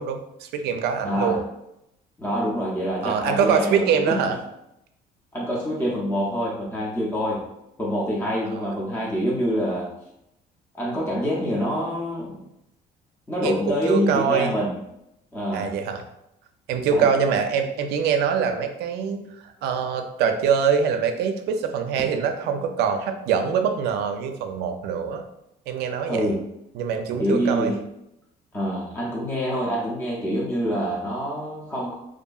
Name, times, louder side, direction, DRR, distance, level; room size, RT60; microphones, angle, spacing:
voice 1, 0.0-1.4 3.0-4.4 8.5-8.7 13.4-14.5 15.5-16.0 16.7-25.2 25.7-26.3 26.7-27.7, right 7 dB, 75° right, 6 dB, 0.4 m, -24 dB
voice 2, 1.0-1.5 2.2-4.2 5.3-7.4 7.8-9.9 10.7-12.4 13.3-14.7 15.3-15.7 16.9-17.1 26.1-26.4 27.2-27.8 28.5-31.9, equal, 10° left, -4 dB, 0.5 m, -26 dB
2.7 x 2.5 x 2.3 m, 0.83 s
cardioid pair, 110°, 17 cm